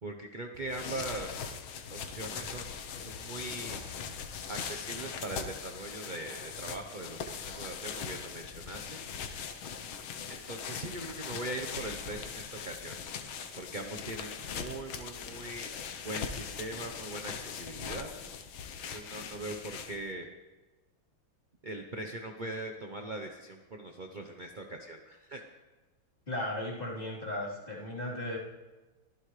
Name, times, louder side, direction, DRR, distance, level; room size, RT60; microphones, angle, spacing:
voice 1, 0.0-1.6 1.9-3.8 4.5-9.0 10.3-13.3 13.6-15.7 16.0-18.1 18.9-20.3 21.6-25.4, right 2 dB, 45° right, 3 dB, 0.6 m, -41 dB
sound 1, 0.5-20.1, left 6 dB, 80° left, 1.8 m, -41 dB
voice 2, 26.3-28.4, left 1 dB, 25° left, -7 dB, 3.8 m, -36 dB
23.5 x 15.0 x 3.3 m, 1.2 s
omnidirectional pair, 2.3 m